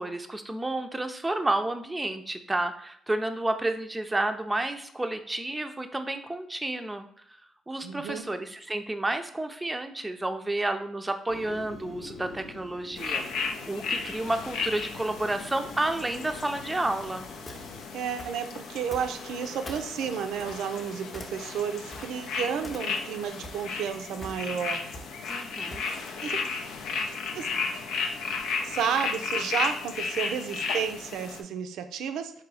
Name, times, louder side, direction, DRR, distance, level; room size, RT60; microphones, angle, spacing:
voice 1, 0.0-7.4 7.7-13.2 13.7-17.3 25.3-25.8, right 2 dB, 15° right, 7 dB, 0.5 m, -31 dB
voice 2, 7.8-8.2 17.9-24.8 26.2-26.4 27.3-27.5 28.6-32.3, right 7 dB, 80° right, 8 dB, 0.4 m, -32 dB
Fire, 11.3-17.9, left 3 dB, 60° left, 0.8 m, -46 dB
sound 1, 13.0-31.4, left 4 dB, 85° left, 0.5 m, -34 dB
sound 2, 16.9-19.4 19.7-22.3 22.6-23.2 23.4-26.2, equal, 25° left, 0.8 m, -44 dB
3.8 x 2.7 x 4.7 m, 0.67 s
cardioid pair, 90°, 0 cm